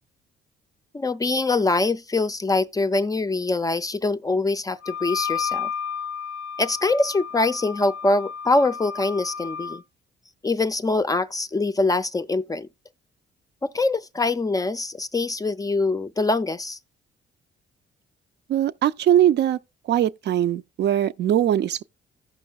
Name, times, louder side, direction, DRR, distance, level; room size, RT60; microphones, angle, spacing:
voice 1, 0.9-5.7 6.6-9.8 10.4-12.7 13.6-16.8, left 3 dB, 20° left, 0.4 m, -24 dB
Wind instrument woodwind instrument, 4.8-9.8, left 7 dB, 80° left, 0.5 m, -32 dB
voice 2, 18.5-19.6 19.9-21.8, right 11 dB, 60° right, 0.4 m, -21 dB
16.0 x 5.4 x 2.3 m
cardioid pair, 90°, 20 cm